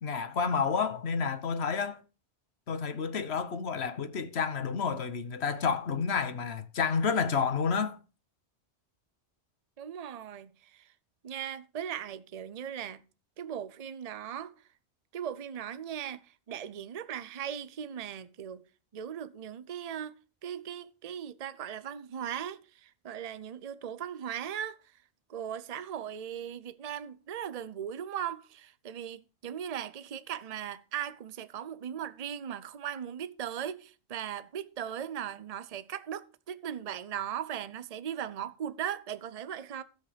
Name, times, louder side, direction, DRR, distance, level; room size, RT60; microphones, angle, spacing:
voice 1, 0.0-2.0 2.7-8.0, left 5 dB, 70° left, 1.4 m, -30 dB
voice 2, 9.8-10.9 11.2-13.0 13.4-14.5 15.1-18.6 18.9-24.8 25.3-39.8, right 9 dB, 40° right, 0.7 m, -38 dB
13.5 x 7.9 x 5.1 m
omnidirectional pair, 1.1 m